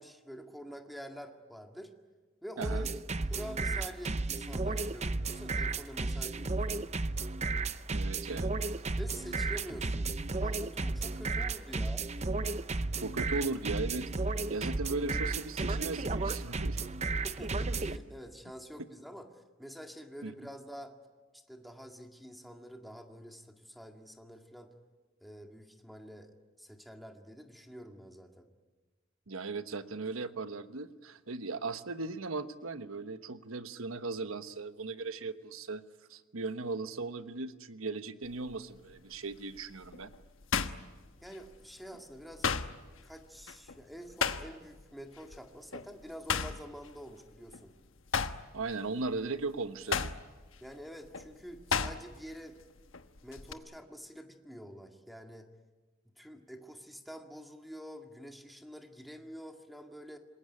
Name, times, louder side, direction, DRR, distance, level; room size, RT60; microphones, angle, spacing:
voice 1, 0.0-1.9 2.4-6.9 9.0-10.1 10.4-12.1 17.2-21.0 21.5-24.7 25.2-26.3 26.6-28.5 41.2-42.5 43.0-47.7 50.6-52.6 53.2-55.5 56.2-60.2, equal, ahead, 3 dB, 2.0 m, -47 dB
sound 1, 2.6-18.0, right 3 dB, 35° right, 0.8 m, -33 dB
voice 2, 7.9-8.5 13.0-14.1 14.5-16.8 20.2-20.3 29.3-35.8 36.1-40.1 48.5-50.1, right 3 dB, 90° right, 11 dB, 1.2 m, -37 dB
sound 2, 38.2-38.6 39.1-41.6 41.9-44.8 45.1-45.4 45.7-47.7 48.0-52.3 52.6-53.5, left 5 dB, 70° left, 1.2 m, -35 dB
27.0 x 21.0 x 9.9 m, 1.3 s
head